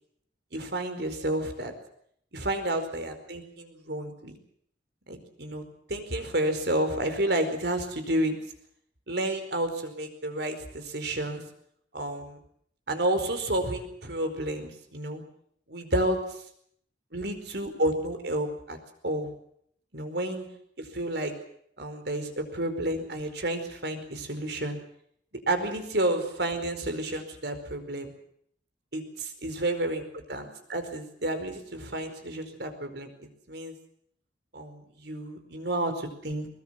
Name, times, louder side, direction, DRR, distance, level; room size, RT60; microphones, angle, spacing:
voice 1, 0.5-1.7 2.3-4.4 5.1-5.6 5.9-8.4 9.1-11.4 11.9-12.4 12.9-15.2 15.7-16.2 17.1-18.8 19.0-19.3 19.9-20.5 20.8-21.3 21.8-24.8 25.5-28.1 28.9-33.1 33.5-33.7 34.5-36.5, right 1 dB, 65° right, 7 dB, 4.7 m, -30 dB
22.5 x 22.0 x 7.5 m, 0.66 s
head